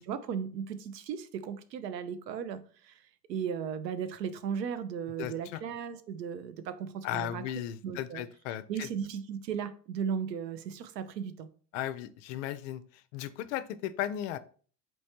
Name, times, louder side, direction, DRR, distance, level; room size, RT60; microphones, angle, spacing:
voice 1, 0.0-3.0 3.3-7.5 7.8-8.2 8.7-11.5, right 7 dB, 75° right, 0.7 m, -36 dB
voice 2, 5.2-5.6 7.0-8.9 11.7-14.4, left 12 dB, 50° left, 0.5 m, -36 dB
4.5 x 3.1 x 2.8 m
hypercardioid pair, 80°, 49 cm